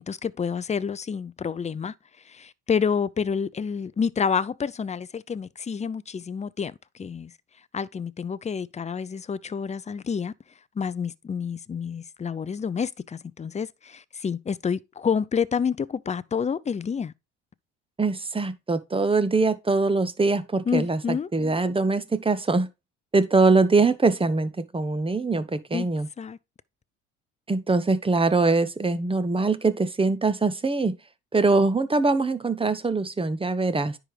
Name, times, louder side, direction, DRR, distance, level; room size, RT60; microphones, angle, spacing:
voice 1, 0.0-1.9 2.3-7.3 7.7-10.3 10.8-17.1 20.7-21.3 25.7-25.9 26.2-26.4, left 6 dB, 20° left, 0.6 m, -28 dB
voice 2, 18.0-22.7 23.1-26.1 27.5-31.0 31.3-34.0, right 3 dB, 15° right, 1.0 m, -23 dB
9.9 x 3.7 x 4.8 m
hypercardioid pair, 65°, 35 cm